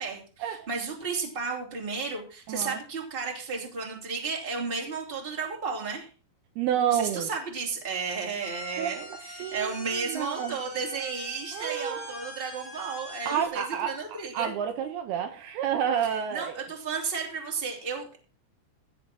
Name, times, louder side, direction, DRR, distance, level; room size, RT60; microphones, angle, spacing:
voice 1, 0.0-6.1 6.9-14.6 16.3-18.2, right 5 dB, 15° right, 0 dB, 2.5 m, -33 dB
voice 2, 2.5-2.8 6.6-7.3 8.8-10.6 11.5-12.1 13.3-16.6, right 9 dB, 75° right, 6 dB, 2.6 m, -30 dB
sound 1, 8.4-13.5, left 1 dB, 25° left, 4.4 m, -44 dB
16.0 x 5.8 x 6.0 m, 0.37 s
omnidirectional pair, 4.9 m